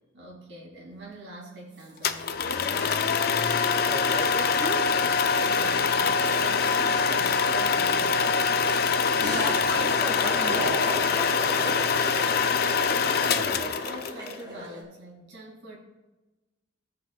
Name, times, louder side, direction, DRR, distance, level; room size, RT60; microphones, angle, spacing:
voice 1, 0.1-3.2 5.3-8.3 13.1-15.8, right 2 dB, 70° right, -2 dB, 2.5 m, -43 dB
sound 1, 1.8-2.0 2.3-3.5 3.9-4.0 4.3-7.1 9.1-14.8, equal, 20° right, 1.3 m, -36 dB
sound 2, 2.0-14.3, left 5 dB, 50° left, 0.4 m, -24 dB
voice 2, 3.8-5.0 9.2-12.4, equal, 10° left, -1 dB, 1.4 m, -36 dB
15.5 x 5.7 x 2.4 m, 1.1 s
head